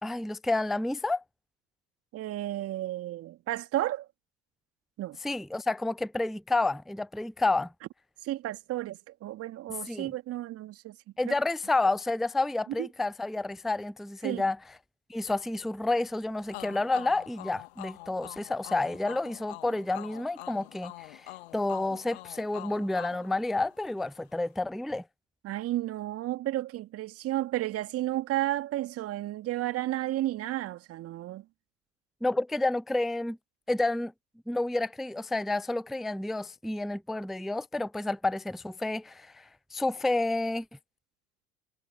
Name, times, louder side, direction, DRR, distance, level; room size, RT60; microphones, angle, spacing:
voice 1, 0.0-1.2 5.2-7.7 9.9-10.1 11.2-14.6 15.1-25.0 32.2-33.4 33.7-34.1 34.5-40.7, left 2 dB, ahead, 0.4 m, -30 dB
voice 2, 2.1-4.1 5.0-5.2 8.2-11.0 11.3-11.4 12.8-12.9 14.2-14.4 25.4-31.4, right 15 dB, 40° right, 2.3 m, -32 dB
sound 1, 16.5-24.1, left 20 dB, 60° left, 2.7 m, -45 dB
figure-of-eight pair, 75°, 36 cm